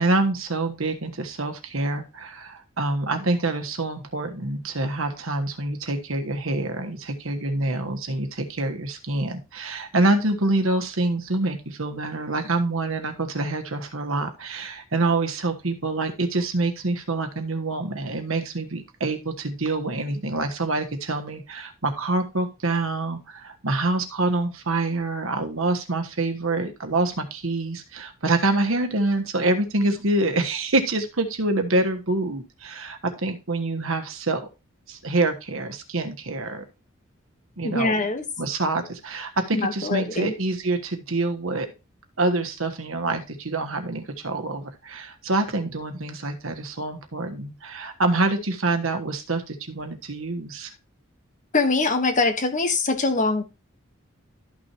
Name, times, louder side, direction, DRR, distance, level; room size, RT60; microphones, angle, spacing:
voice 1, 0.0-34.4 34.9-36.6 37.6-38.0 38.4-41.7 42.2-50.7, right 2 dB, 75° right, 6 dB, 1.3 m, -26 dB
voice 2, 37.6-38.2 39.5-40.3 51.5-53.4, left 3 dB, 40° left, 7 dB, 1.4 m, -23 dB
12.5 x 6.1 x 3.0 m, 0.28 s
head